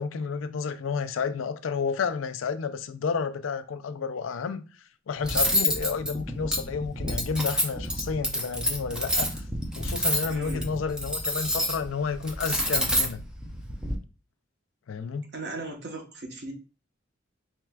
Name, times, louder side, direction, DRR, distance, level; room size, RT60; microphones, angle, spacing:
voice 1, 0.0-4.6 5.1-9.4 9.8-13.3 14.9-15.2, left 5 dB, 80° left, 0.4 m, -31 dB
Cutlery silverware, 5.2-13.9, equal, 5° right, 0.5 m, -28 dB
voice 2, 10.3-10.7 15.3-16.5, right 2 dB, 55° right, 0.9 m, -37 dB
4.4 x 3.3 x 2.2 m
head